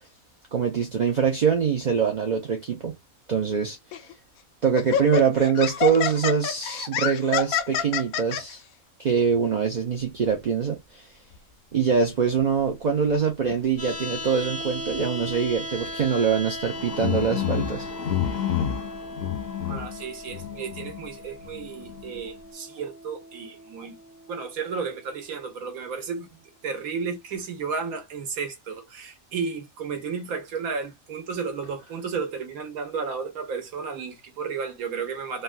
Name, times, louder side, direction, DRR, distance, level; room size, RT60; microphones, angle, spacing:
voice 1, 0.5-2.9 3.3-3.8 4.6-8.6 9.0-11.1 11.7-17.9, right 6 dB, 50° right, 0.5 m, -24 dB
Laughter, 3.9-4.1 4.8-8.4, left 9 dB, 85° left, 1.1 m, -27 dB
sound 1, 11.3-11.4 12.4-12.5 13.9-14.0 14.8-15.0 15.8-16.0 16.7-21.1 21.4-22.2, left 10 dB, 60° left, 0.7 m, -30 dB
sound 2, 13.8-25.8, left 1 dB, 40° left, 1.4 m, -38 dB
voice 2, 19.7-24.0 24.3-35.4, right 5 dB, 80° right, 1.4 m, -33 dB
3.4 x 2.2 x 2.5 m
omnidirectional pair, 1.5 m